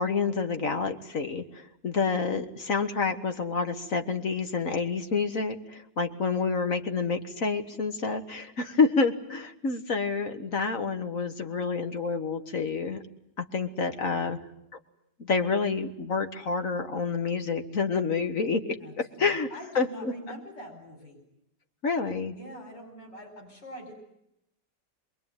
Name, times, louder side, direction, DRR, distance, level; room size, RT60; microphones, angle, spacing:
voice 1, 0.0-13.0 13.4-14.4 15.2-19.5 19.8-20.1 21.8-22.4, left 4 dB, 50° left, 7 dB, 1.9 m, -28 dB
voice 2, 18.8-21.2 22.3-23.9, equal, 85° left, 4 dB, 5.7 m, -44 dB
27.5 x 21.5 x 9.1 m, 0.79 s
omnidirectional pair, 1.9 m